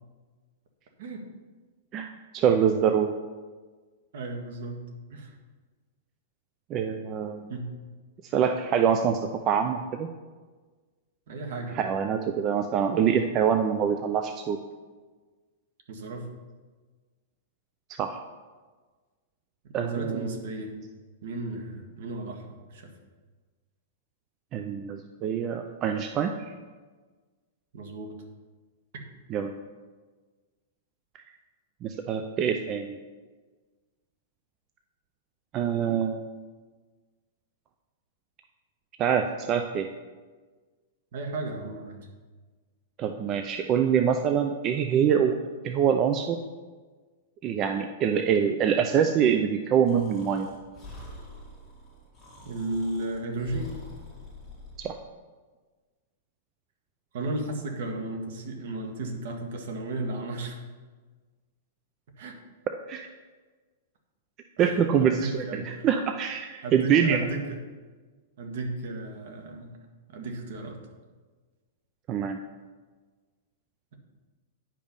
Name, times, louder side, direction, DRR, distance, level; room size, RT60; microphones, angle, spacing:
voice 1, 1.9-3.1 6.7-7.5 8.3-9.2 9.5-10.1 11.7-14.6 18.0-18.2 19.7-20.3 24.5-26.3 29.3-29.6 31.8-33.0 35.5-36.3 39.0-39.9 43.0-45.4 45.6-46.4 47.4-50.5 54.8-54.9 62.9-63.1 64.6-67.2 72.1-72.4, right 8 dB, 25° right, 6 dB, 0.4 m, -25 dB
voice 2, 4.1-4.8 5.1-5.3 7.5-7.7 11.3-11.9 15.9-16.3 19.7-20.7 21.2-22.4 22.7-22.9 27.7-28.1 28.9-29.0 41.1-42.1 52.4-53.7 57.1-60.6 62.2-62.4 64.6-65.9 66.6-67.6 68.4-69.8 70.1-70.8, right 2 dB, 60° right, 4 dB, 1.6 m, -34 dB
Breathing, 49.9-55.0, left 2 dB, 5° left, 2.0 m, -46 dB
9.9 x 5.3 x 5.3 m, 1.4 s
supercardioid pair, 160°, 0 cm